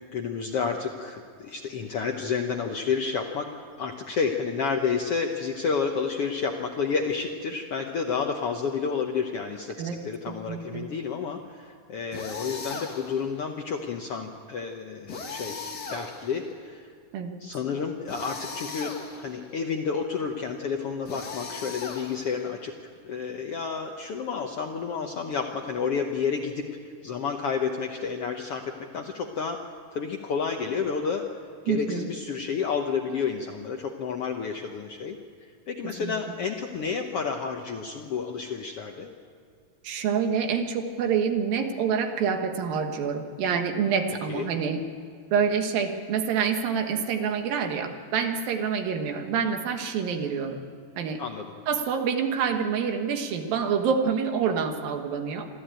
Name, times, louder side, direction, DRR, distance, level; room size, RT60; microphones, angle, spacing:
voice 1, 0.1-16.9 17.4-18.9 19.2-22.7 23.0-26.6 27.0-31.2 31.6-39.1 44.3-44.5 51.2-51.5, left 5 dB, 70° left, 3 dB, 1.4 m, -30 dB
voice 2, 10.3-10.9 17.1-17.4 31.7-32.1 36.0-36.1 39.8-44.8 45.3-50.6 51.0-51.2 51.7-55.5, right 6 dB, 85° right, 5 dB, 3.2 m, -27 dB
sound 1, 12.1-13.3 15.1-16.5 18.1-19.4 21.0-22.5, left 4 dB, 40° left, 1.7 m, -38 dB
25.0 x 14.5 x 8.9 m, 2.3 s
omnidirectional pair, 4.0 m